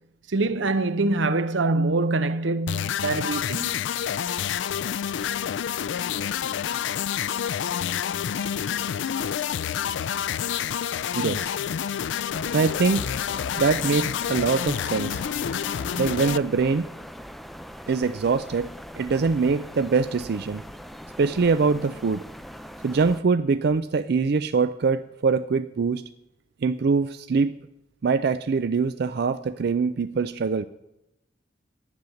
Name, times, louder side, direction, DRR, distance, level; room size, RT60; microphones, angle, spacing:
voice 1, 0.3-3.9, right 2 dB, 85° right, 0.8 m, -24 dB
sound 1, 2.7-16.4, left 9 dB, 80° left, 0.4 m, -28 dB
voice 2, 11.1-11.5 12.5-13.1 13.6-15.2 16.0-16.9 17.9-18.7 19.0-20.6 21.2-22.2 22.8-26.0 26.6-27.5 28.0-30.7, right 4 dB, 60° right, 0.4 m, -23 dB
sound 2, 12.3-23.2, equal, ahead, 0.4 m, -41 dB
10.5 x 9.3 x 7.1 m
head